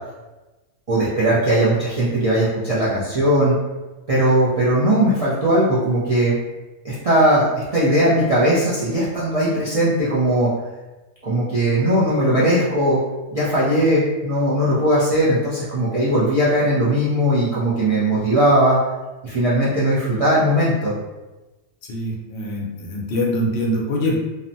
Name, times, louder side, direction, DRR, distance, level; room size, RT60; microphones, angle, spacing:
voice 1, 0.9-3.6 4.1-6.4 6.8-10.5 11.2-13.0 13.3-18.8 19.2-20.9, right 1 dB, 60° right, -9 dB, 0.4 m, -19 dB
voice 2, 21.9-24.2, left 1 dB, 60° left, -2 dB, 0.7 m, -23 dB
2.7 x 2.1 x 2.6 m, 1.1 s
omnidirectional pair, 1.3 m